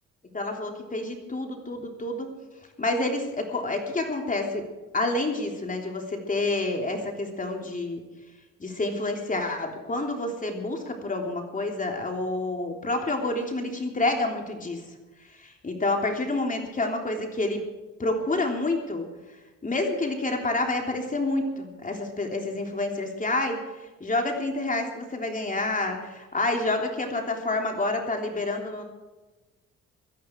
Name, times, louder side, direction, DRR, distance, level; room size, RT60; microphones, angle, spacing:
voice 1, 0.3-2.3 2.8-4.7 4.9-8.0 8.6-14.8 15.4-17.6 18.0-19.1 19.6-23.6 24.0-28.8, left 2 dB, 25° left, 2 dB, 3.4 m, -28 dB
17.0 x 13.5 x 4.6 m, 1.2 s
cardioid pair, 90°, 30 cm